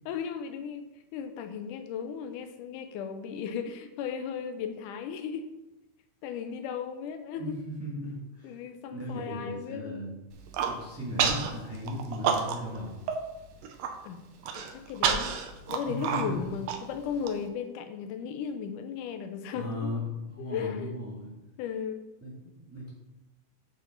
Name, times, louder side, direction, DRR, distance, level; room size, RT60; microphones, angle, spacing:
voice 1, 0.1-0.8 1.1-5.5 6.2-7.6 8.4-10.1 14.0-14.2 14.6-15.4 15.7-19.9 20.4-21.0 21.6-22.0, left 7 dB, 90° left, 8 dB, 2.2 m, -36 dB
voice 2, 7.4-8.5 8.9-10.1 10.6-13.0 15.9-16.5 18.6-18.7 19.5-21.3 22.2-22.9, left 1 dB, 5° right, -6 dB, 1.7 m, -37 dB
Human voice, 10.3-10.7 11.2-11.5 11.9-12.8 13.1-13.2 13.6-13.9 14.4-17.3, right 7 dB, 70° right, 1.7 m, -29 dB
7.9 x 6.4 x 3.9 m, 0.99 s
omnidirectional pair, 3.6 m